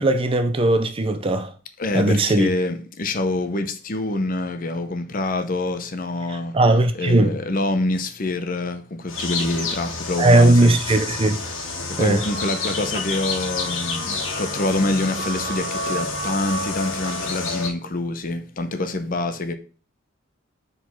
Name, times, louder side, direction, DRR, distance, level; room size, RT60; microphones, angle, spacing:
voice 1, 0.0-1.5 1.9-2.5 6.5-7.4 10.2-11.4 11.9-12.2, right 2 dB, 25° right, 0.5 m, -18 dB
voice 2, 1.8-6.6 6.9-10.7 11.9-19.5, left 2 dB, 45° left, 0.7 m, -26 dB
sound 1, 9.1-17.7, left 3 dB, 75° left, 1.5 m, -29 dB
4.9 x 4.0 x 5.7 m
head